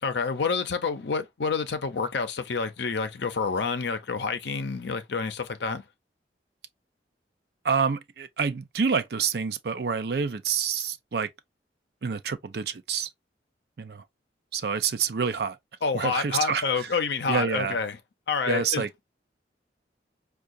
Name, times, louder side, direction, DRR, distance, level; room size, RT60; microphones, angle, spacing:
voice 1, 0.0-5.8 15.8-18.0 18.3-18.9, left 5 dB, 75° left, 0.6 m, -28 dB
voice 2, 7.6-11.3 12.0-13.1 13.8-14.0 14.5-15.6 15.9-16.9 17.3-17.8 18.5-19.0, right 6 dB, 60° right, 0.4 m, -28 dB
4.6 x 2.3 x 2.5 m
head